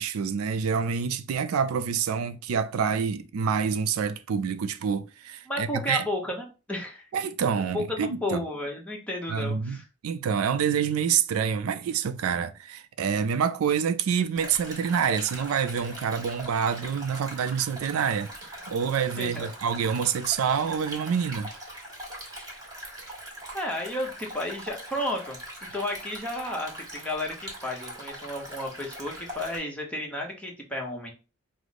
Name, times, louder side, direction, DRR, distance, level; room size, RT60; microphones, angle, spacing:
voice 1, 0.0-6.1 7.1-8.4 9.3-9.8 10.0-18.3 18.7-21.5, right 7 dB, 80° right, 0.4 m, -27 dB
voice 2, 5.5-7.1 7.7-9.9 19.2-19.5 22.4-22.5 23.5-25.4 25.7-31.1, left 1 dB, 5° left, 0.8 m, -32 dB
Stream, 14.3-29.6, right 1 dB, 15° right, 1.3 m, -41 dB
4.8 x 2.0 x 3.9 m
head